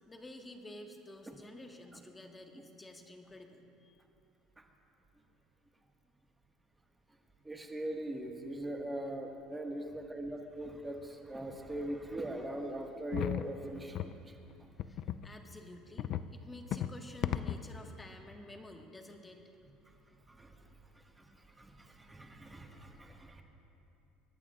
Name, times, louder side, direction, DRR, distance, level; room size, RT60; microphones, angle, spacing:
voice 1, 0.1-4.0 14.9-19.4, left 1 dB, 15° left, 3 dB, 1.5 m, -51 dB
voice 2, 7.4-14.4 20.3-20.5 21.2-23.4, right 1 dB, 15° right, 2 dB, 1.5 m, -41 dB
sound 1, 13.1-13.5 14.0-14.1 14.8-15.3 16.0-16.3 16.7-17.0 17.2-17.7, left 11 dB, 60° left, 0.4 m, -35 dB
27.0 x 11.5 x 2.4 m, 2.8 s
supercardioid pair, 85°, 0 cm